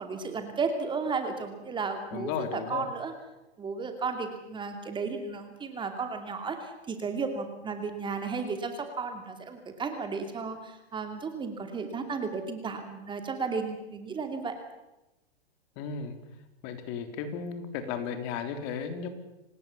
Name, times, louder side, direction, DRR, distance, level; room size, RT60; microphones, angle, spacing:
voice 1, 0.0-3.1 3.6-14.5, right 4 dB, 15° right, 6 dB, 2.7 m, -34 dB
voice 2, 2.1-2.9 15.8-16.2 16.6-19.1, left 6 dB, 40° left, 8 dB, 3.7 m, -34 dB
26.5 x 19.0 x 7.2 m, 0.95 s
hypercardioid pair, 130°, 32 cm